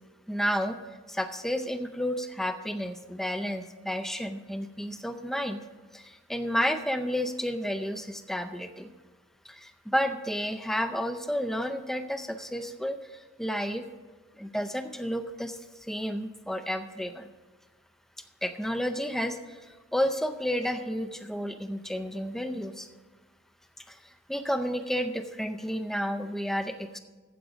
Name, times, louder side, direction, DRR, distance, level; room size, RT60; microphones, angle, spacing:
voice 1, 0.3-0.8 1.1-5.6 5.9-8.9 9.4-13.9 14.4-17.3 18.4-22.9 23.8-27.0, equal, ahead, 8 dB, 0.4 m, -31 dB
15.0 x 5.1 x 6.1 m, 1.3 s
head